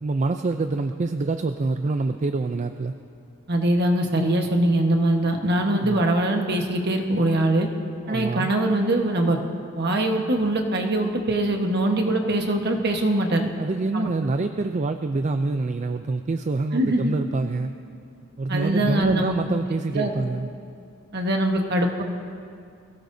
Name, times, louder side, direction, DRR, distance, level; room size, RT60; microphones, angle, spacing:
voice 1, 0.0-2.9 5.8-6.0 8.1-8.5 13.6-17.7 18.4-20.5, right 3 dB, 35° right, 8 dB, 0.4 m, -26 dB
voice 2, 3.5-7.7 8.1-9.4 9.7-13.5 13.9-14.1 16.7-17.2 18.5-19.3 19.9-20.1 21.1-22.0, right 1 dB, 50° right, 2 dB, 1.3 m, -22 dB
22.5 x 17.0 x 2.7 m, 2.4 s
head